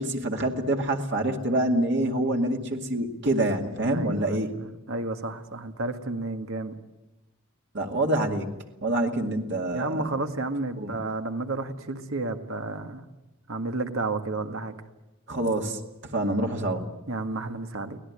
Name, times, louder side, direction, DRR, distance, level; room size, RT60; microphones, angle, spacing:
voice 1, 0.0-4.5 7.7-8.5 8.8-10.1 10.8-10.9 15.3-16.9, right 1 dB, 60° right, 2 dB, 2.3 m, -26 dB
voice 2, 3.8-6.7 9.7-13.0 13.5-14.7 17.1-18.0, right 2 dB, 75° right, 7 dB, 1.8 m, -31 dB
24.0 x 18.5 x 9.8 m, 1.0 s
head